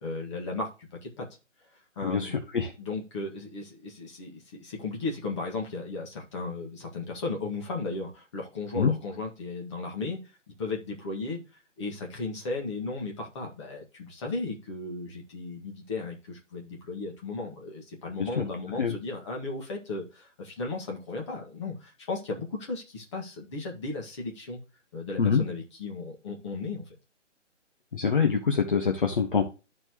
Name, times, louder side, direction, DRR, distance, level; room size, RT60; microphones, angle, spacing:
voice 1, 0.0-1.3 1.7-2.4 2.8-10.2 10.6-24.6 24.9-26.9, left 3 dB, 25° left, 0 dB, 1.8 m, -35 dB
voice 2, 2.0-2.7 8.8-8.9 18.2-18.4 18.8-18.9 25.2-25.4 27.9-29.4, left 6 dB, 45° left, 3 dB, 1.2 m, -25 dB
12.0 x 4.5 x 3.0 m, 0.30 s
figure-of-eight pair, 150°, 37 cm